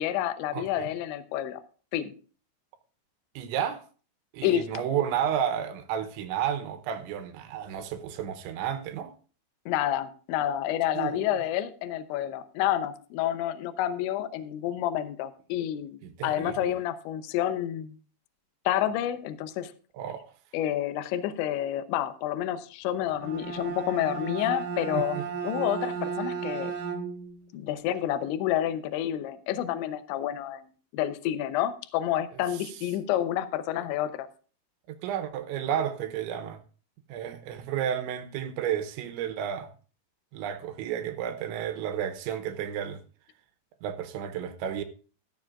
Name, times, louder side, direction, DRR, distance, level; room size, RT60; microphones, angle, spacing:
voice 1, 0.0-1.6 1.9-2.1 4.4-4.7 9.7-18.0 18.7-19.7 20.5-25.2 25.4-26.7 27.5-30.7 30.9-34.3, left 11 dB, 80° left, 3.0 m, -29 dB
voice 2, 0.5-0.9 3.4-3.8 4.3-9.1 11.0-11.3 16.0-16.6 19.9-20.3 24.9-25.2 34.9-36.6 37.1-39.7 40.3-43.0 43.8-44.8, right 9 dB, 80° right, 3.1 m, -32 dB
Bowed string instrument, 23.1-27.4, right 6 dB, 45° right, 2.5 m, -34 dB
14.5 x 11.5 x 2.4 m
omnidirectional pair, 5.6 m